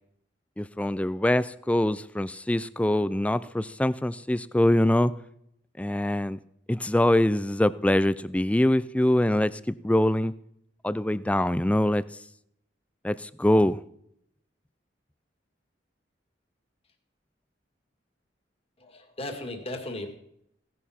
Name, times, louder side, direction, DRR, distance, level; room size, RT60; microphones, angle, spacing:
voice 1, 0.6-5.1 5.8-6.4 6.7-10.3 10.8-12.0 13.0-13.8, left 1 dB, 5° left, 17 dB, 0.4 m, -24 dB
voice 2, 18.8-20.1, left 1 dB, 35° left, 4 dB, 1.9 m, -36 dB
17.0 x 11.0 x 4.3 m, 0.74 s
head